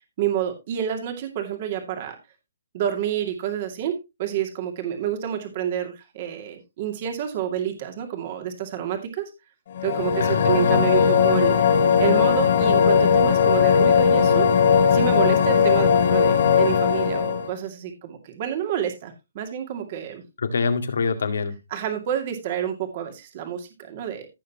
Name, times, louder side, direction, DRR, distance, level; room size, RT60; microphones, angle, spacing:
voice 1, 0.2-2.2 2.7-9.3 9.8-11.7 12.0-14.5 14.9-20.2 21.7-24.3, right 10 dB, 35° right, 5 dB, 2.3 m, -28 dB
sound 1, 9.7-17.5, left 6 dB, 50° left, 2.8 m, -18 dB
voice 2, 10.2-11.4 20.4-21.6, left 4 dB, 75° left, 8 dB, 2.1 m, -26 dB
16.0 x 6.7 x 2.9 m, 0.24 s
hypercardioid pair, 160°, 0 cm